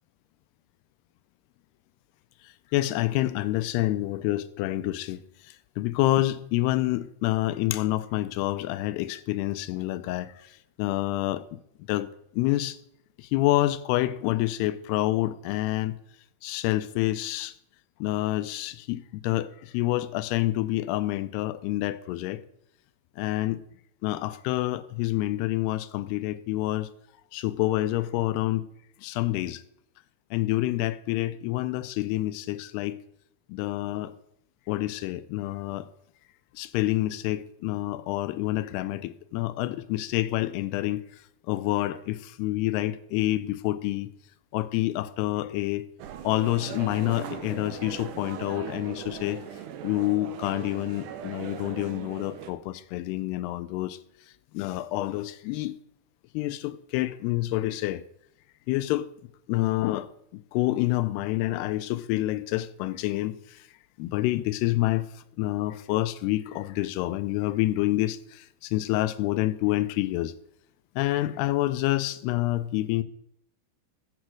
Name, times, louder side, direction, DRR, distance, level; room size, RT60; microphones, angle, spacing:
voice 1, 2.4-11.6 11.9-12.1 12.3-12.8 13.2-16.0 16.4-17.5 18.0-22.4 23.2-23.6 24.0-26.9 27.3-28.7 29.0-29.6 30.3-33.0 33.5-34.1 34.7-35.9 36.5-44.1 44.5-45.9 46.2-49.4 49.8-54.0 54.5-55.8 56.3-58.0 58.7-59.1 59.5-63.7 64.0-70.3 71.0-73.0, left 16 dB, 85° left, 2.5 m, -28 dB
sound 1, 46.0-52.5, right 9 dB, 75° right, 1.9 m, -39 dB
12.5 x 7.4 x 6.1 m
omnidirectional pair, 4.8 m